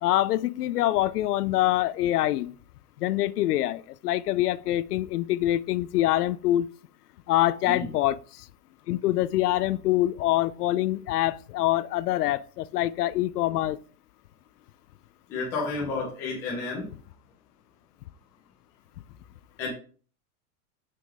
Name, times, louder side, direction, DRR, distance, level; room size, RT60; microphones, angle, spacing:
voice 1, 0.0-2.5 3.0-6.7 7.3-8.5 8.9-13.8, left 14 dB, 85° left, 0.6 m, -25 dB
voice 2, 15.3-16.9 19.6-19.7, left 3 dB, 5° left, 0.5 m, -31 dB
6.1 x 6.0 x 3.5 m
supercardioid pair, 180°, 45 cm